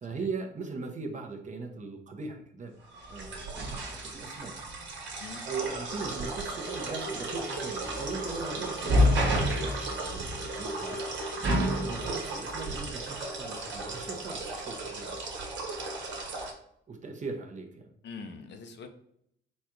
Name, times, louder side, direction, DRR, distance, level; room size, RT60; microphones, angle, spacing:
voice 1, 0.0-2.8 3.1-4.5 5.4-11.1 11.8-15.2 16.9-17.9, right 4 dB, 40° right, 2 dB, 0.9 m, -39 dB
sound 1, 2.9-16.5, right 1 dB, 70° right, 1.4 m, -31 dB
voice 2, 16.1-16.5 18.0-18.9, left 5 dB, 60° left, 6 dB, 0.7 m, -45 dB
4.2 x 2.5 x 4.4 m, 0.70 s
cardioid pair, 90°, 20 cm